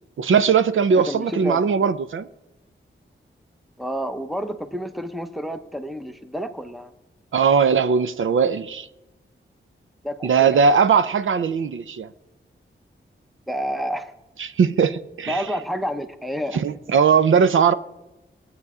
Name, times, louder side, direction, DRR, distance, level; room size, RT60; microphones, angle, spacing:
voice 1, 0.2-2.3 7.3-8.9 10.2-12.1 14.4-15.4 16.5-17.7, right 6 dB, 80° right, 0.6 m, -19 dB
voice 2, 1.1-1.6 3.8-6.9 10.0-10.6 13.5-14.1 15.3-16.6, equal, ahead, 0.7 m, -29 dB
21.5 x 8.3 x 4.9 m
wide cardioid pair, 175°, 20 cm